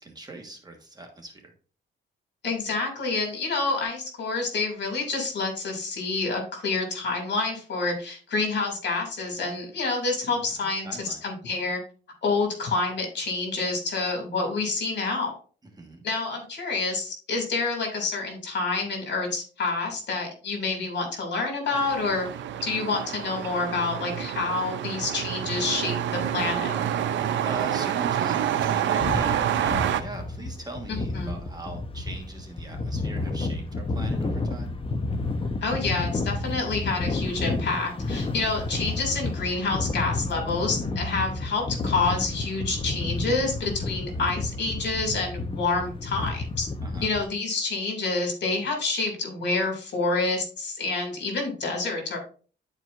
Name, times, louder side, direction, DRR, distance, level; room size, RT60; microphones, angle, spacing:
voice 1, 0.0-1.5 10.4-10.5 10.8-11.2 15.7-16.0 27.4-34.7 46.8-47.1, right 2 dB, 20° right, 2 dB, 1.5 m, -40 dB
voice 2, 2.4-11.8 12.2-15.4 16.0-22.3 22.6-26.7 30.9-31.3 35.6-46.7 47.0-52.2, left 3 dB, 65° left, 2 dB, 2.5 m, -28 dB
sound 1, 21.7-30.0, right 10 dB, 90° right, 0.6 m, -28 dB
sound 2, 29.0-47.2, left 2 dB, 30° left, 0.8 m, -31 dB
11.0 x 4.6 x 2.5 m, 0.40 s
cardioid pair, 110°, 19 cm